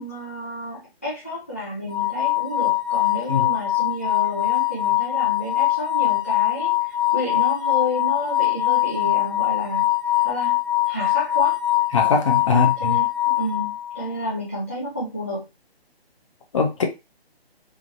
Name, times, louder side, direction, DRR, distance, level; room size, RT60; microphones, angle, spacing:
voice 1, 0.0-9.9 10.2-10.6 10.9-11.6 12.5-15.4, left 1 dB, 15° left, 0.4 m, -30 dB
sound 1, 1.9-14.1, left 16 dB, 55° left, 1.5 m, -22 dB
voice 2, 11.9-13.0 16.5-16.8, left 5 dB, 30° left, 0.8 m, -21 dB
3.7 x 2.9 x 3.8 m
figure-of-eight pair, 155°, 31 cm